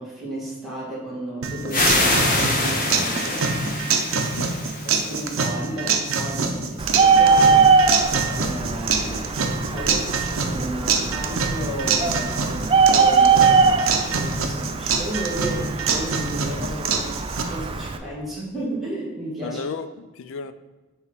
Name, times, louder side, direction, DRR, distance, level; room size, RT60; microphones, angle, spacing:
voice 1, 0.0-3.5 4.8-7.7 8.3-19.6, right 1 dB, ahead, -8 dB, 1.9 m, -33 dB
sound 1, 1.4-17.4, right 5 dB, 75° right, 0.7 m, -25 dB
sound 2, 1.7-5.4, left 2 dB, 45° left, 1.0 m, -24 dB
voice 2, 4.2-4.6 19.4-20.5, left 5 dB, 65° left, 12 dB, 0.4 m, -34 dB
Bird, 6.8-18.0, right 5 dB, 25° right, 0.4 m, -21 dB
7.3 x 3.0 x 5.8 m, 1.2 s
head